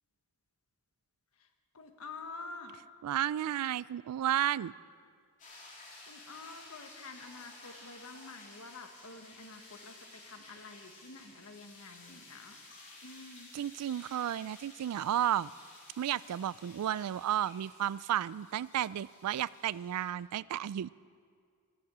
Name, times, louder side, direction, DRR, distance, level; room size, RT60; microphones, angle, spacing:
voice 1, 1.7-2.7 6.1-9.9 10.3-12.6 13.0-13.5, left 3 dB, 70° left, 6 dB, 1.4 m, -48 dB
voice 2, 3.0-4.7 13.5-15.5 16.0-20.9, right 11 dB, 90° right, 22 dB, 0.3 m, -32 dB
sound 1, 5.4-20.1, left 2 dB, 35° left, 3.3 m, -54 dB
15.0 x 12.5 x 6.1 m, 2.1 s
head